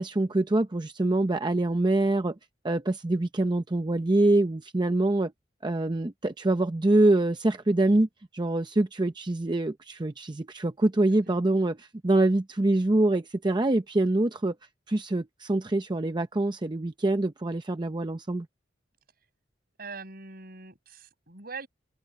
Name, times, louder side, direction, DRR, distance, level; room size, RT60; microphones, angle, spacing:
voice 1, 0.0-2.4 2.6-5.3 5.6-8.1 8.3-14.5 14.9-18.5, right 2 dB, 25° right, 0.6 m, -25 dB
voice 2, 19.8-21.7, right 4 dB, 55° right, 5.8 m, -42 dB
head